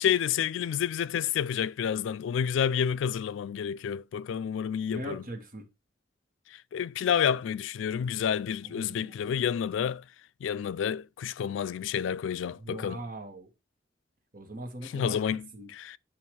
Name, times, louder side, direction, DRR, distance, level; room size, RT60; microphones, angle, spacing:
voice 1, 0.0-5.2 6.5-10.0 10.4-13.0 14.8-16.0, left 8 dB, 85° left, 0.3 m, -29 dB
voice 2, 4.9-5.7 8.7-9.3 12.6-13.5 14.3-15.7, right 1 dB, 45° right, 1.6 m, -41 dB
8.9 x 3.0 x 4.6 m
head